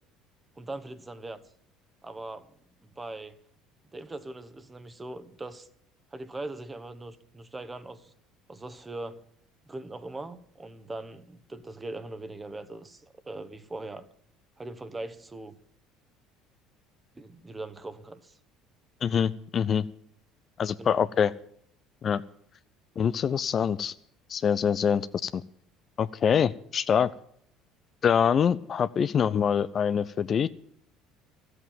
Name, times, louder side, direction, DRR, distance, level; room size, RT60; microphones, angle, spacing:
voice 1, 0.6-1.4 2.0-2.5 2.8-3.4 3.9-5.7 6.1-8.1 8.5-9.2 9.7-14.1 14.6-15.6 17.2-18.4 20.8-21.1, right 2 dB, 20° right, 11 dB, 1.2 m, -40 dB
voice 2, 19.0-19.9 20.6-21.3 22.0-22.2 23.0-23.9 24.3-25.4 26.0-27.1 28.0-30.5, left 7 dB, 40° left, 15 dB, 0.5 m, -25 dB
14.0 x 8.0 x 9.0 m, 0.67 s
hypercardioid pair, 65°, 0 cm